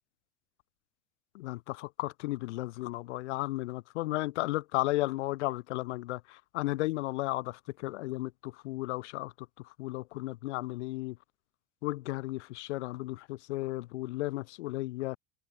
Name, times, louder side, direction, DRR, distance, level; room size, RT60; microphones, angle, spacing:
voice 1, 1.3-9.3 9.8-11.2 11.8-15.2, left 19 dB, 85° left, 3.4 m, -34 dB
supercardioid pair, 110°, 34 cm